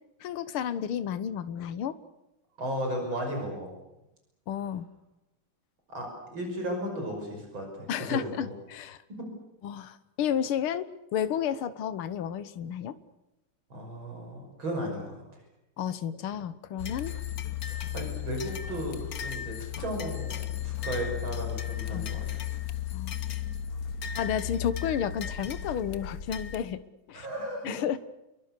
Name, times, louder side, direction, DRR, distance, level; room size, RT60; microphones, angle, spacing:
voice 1, 0.2-2.0 4.5-4.9 7.9-9.0 9.6-10.9 11.1-13.0 15.8-17.2 21.9-22.1 22.9-23.2 24.2-26.8 27.1-27.3 27.6-28.0, left 9 dB, 80° left, 13 dB, 1.9 m, -31 dB
voice 2, 2.6-3.7 5.9-8.5 9.2-9.3 13.7-15.2 17.6-22.3 27.1-27.8, equal, 65° right, 2 dB, 6.6 m, -35 dB
sound 1, 16.8-26.6, left 10 dB, 50° left, 1.3 m, -35 dB
29.0 x 23.0 x 6.7 m, 0.93 s
omnidirectional pair, 2.3 m